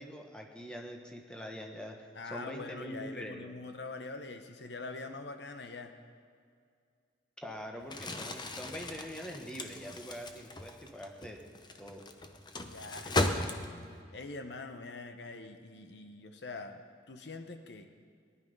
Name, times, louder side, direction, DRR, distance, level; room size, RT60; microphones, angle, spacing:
voice 1, 0.0-3.5 7.4-11.4 11.8-12.0, equal, 5° left, 2 dB, 1.3 m, -44 dB
voice 2, 2.1-5.9 12.7-13.2 14.1-17.9, left 3 dB, 60° left, 7 dB, 0.9 m, -44 dB
Crumpling crinkling, 7.8-14.0, left 2 dB, 25° left, 0.8 m, -36 dB
19.0 x 11.0 x 5.4 m, 2.2 s
head